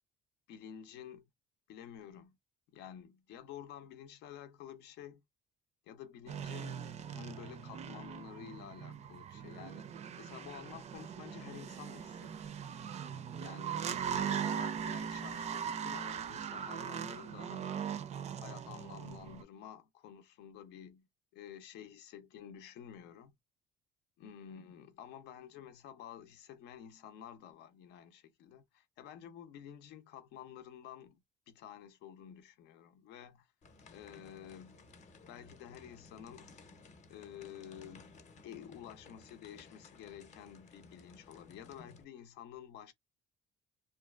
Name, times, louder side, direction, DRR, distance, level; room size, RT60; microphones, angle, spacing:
voice 1, 0.5-1.2 1.7-2.4 2.7-5.2 5.9-12.7 13.4-13.9 14.2-17.8 18.4-21.1 21.3-23.3 24.2-33.5 33.9-34.9 35.3-36.5 37.1-38.1 38.4-42.9, left 9 dB, 85° left, 0.6 m, -51 dB
sound 1, 6.3-19.4, right 8 dB, 40° right, 0.4 m, -40 dB
sound 2, 33.6-42.0, left 3 dB, 45° left, 0.7 m, -57 dB
2.6 x 2.3 x 2.3 m
cardioid pair, 110°, 17 cm